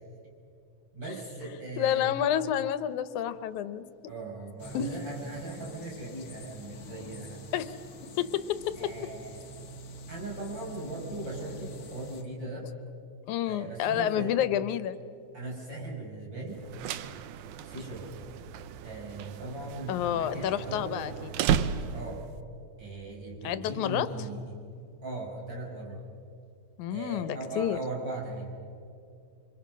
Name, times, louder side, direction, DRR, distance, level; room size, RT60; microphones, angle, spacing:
voice 1, 0.9-2.1 4.1-7.5 8.8-9.4 10.1-12.7 13.4-14.3 15.3-16.6 17.6-18.1 18.8-21.0 21.9-22.2 22.8-24.5 25.0-26.1 26.9-28.6, right 2 dB, 40° right, -2 dB, 6.0 m, -39 dB
voice 2, 1.8-3.9 4.7-4.9 7.5-7.7 8.2-8.8 13.3-15.0 19.9-21.3 23.4-24.1 26.8-27.8, left 10 dB, 85° left, 13 dB, 2.3 m, -29 dB
sound 1, 4.6-12.2, equal, 40° left, 1.2 m, -45 dB
sound 2, 16.6-22.3, right 8 dB, 85° right, 2.2 m, -34 dB
27.0 x 25.0 x 6.2 m, 2.5 s
omnidirectional pair, 3.3 m